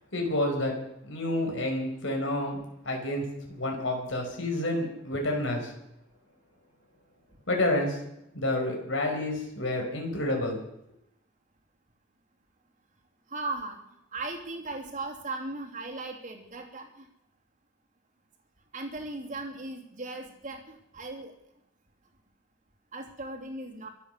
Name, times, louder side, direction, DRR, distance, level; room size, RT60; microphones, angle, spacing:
voice 1, 0.1-0.8 1.1-2.6 2.9-5.7 7.5-8.0 8.3-10.6, left 1 dB, 75° left, 2 dB, 5.3 m, -29 dB
voice 2, 13.3-13.8 14.1-17.0 18.7-21.3 22.9-23.9, right 2 dB, 40° right, 1 dB, 3.1 m, -37 dB
24.5 x 8.4 x 6.8 m, 0.81 s
head